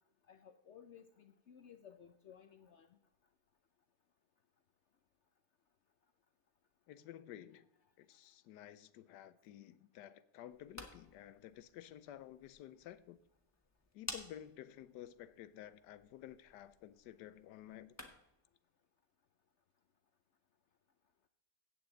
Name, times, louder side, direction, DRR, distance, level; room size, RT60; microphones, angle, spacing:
voice 1, 0.3-2.9, left 8 dB, 65° left, 9 dB, 0.7 m, -58 dB
voice 2, 6.9-7.7 8.0-13.2 13.9-18.1, left 11 dB, 85° left, 16 dB, 1.2 m, -53 dB
sound 1, 10.4-18.4, left 1 dB, 10° left, 0.9 m, -54 dB
14.0 x 8.7 x 3.8 m, 0.86 s
omnidirectional pair, 1.8 m